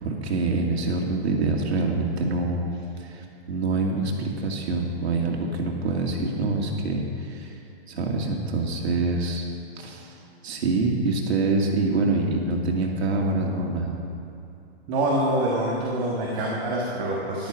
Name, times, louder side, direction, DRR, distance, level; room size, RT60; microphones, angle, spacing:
voice 1, 0.0-2.6 3.0-7.5 7.9-9.4 9.8-10.1 10.4-14.0, right 3 dB, 80° right, 0 dB, 2.5 m, -25 dB
voice 2, 14.9-17.5, right 1 dB, 25° right, -4 dB, 1.6 m, -25 dB
13.5 x 11.5 x 5.1 m, 2.8 s
hypercardioid pair, 170°, 32 cm